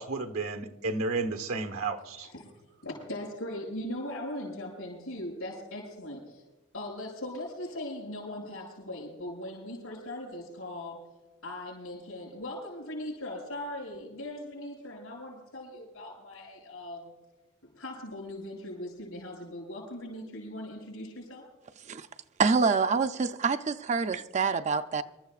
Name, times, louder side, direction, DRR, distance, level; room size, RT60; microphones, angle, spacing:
voice 1, 0.0-2.3, right 3 dB, 90° right, 1.2 m, -32 dB
voice 2, 2.8-6.4 6.7-11.0 11.4-17.1 17.7-21.5, left 1 dB, 80° left, 6.1 m, -39 dB
voice 3, 22.4-25.0, right 5 dB, 35° right, 0.4 m, -26 dB
27.0 x 13.5 x 2.4 m
head